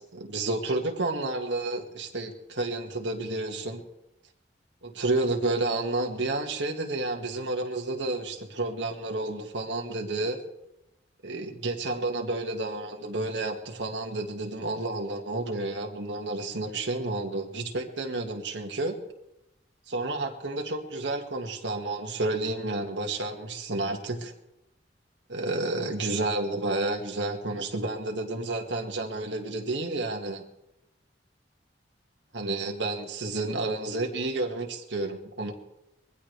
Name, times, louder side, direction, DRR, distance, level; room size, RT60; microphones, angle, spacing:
voice 1, 0.0-3.8 4.8-10.4 11.2-19.0 19.9-24.3 25.3-30.4 32.3-35.5, right 2 dB, 90° right, 1 dB, 1.9 m, -30 dB
22.0 x 16.0 x 3.4 m, 0.88 s
head